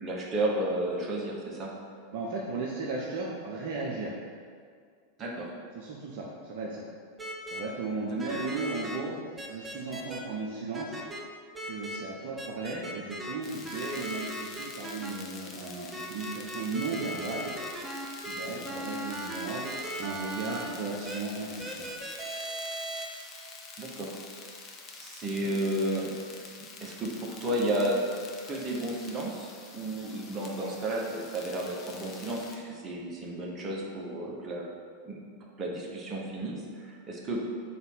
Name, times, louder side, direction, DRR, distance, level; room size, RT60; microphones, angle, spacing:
voice 1, 0.0-1.8 5.2-5.5 8.1-8.3 18.4-18.9 23.8-24.2 25.0-26.2 26.8-28.1 28.5-34.7 35.0-35.2 35.6-37.4, right 1 dB, 25° right, -2 dB, 1.2 m, -32 dB
voice 2, 2.1-4.1 5.7-6.8 7.5-9.2 9.5-11.0 11.7-17.5 18.2-19.6 20.0-21.9, right 3 dB, 55° right, -3 dB, 0.8 m, -35 dB
sound 1, 7.2-7.6 8.2-9.0 9.4-10.2 10.7-11.2 11.5-12.0 12.4-13.3 13.6-15.1 15.9-20.6 21.0-21.2 21.6-23.1, right 1 dB, 10° right, 0.8 m, -37 dB
sound 2, 13.4-32.6, left 4 dB, 35° left, 0.8 m, -47 dB
4.2 x 4.0 x 5.6 m, 2.1 s
figure-of-eight pair, 90°, 0 cm